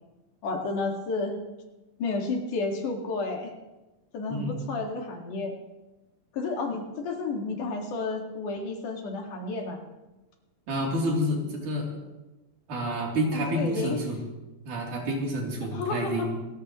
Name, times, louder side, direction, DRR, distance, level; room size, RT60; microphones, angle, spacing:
voice 1, 0.4-1.4 2.0-3.5 4.1-5.6 6.3-9.8 13.3-14.0 15.7-16.3, left 3 dB, 80° left, 2 dB, 3.6 m, -31 dB
voice 2, 10.7-11.9 12.7-14.3 14.7-16.4, equal, 75° right, -2 dB, 4.8 m, -29 dB
27.5 x 14.0 x 3.1 m, 1.1 s
omnidirectional pair, 3.6 m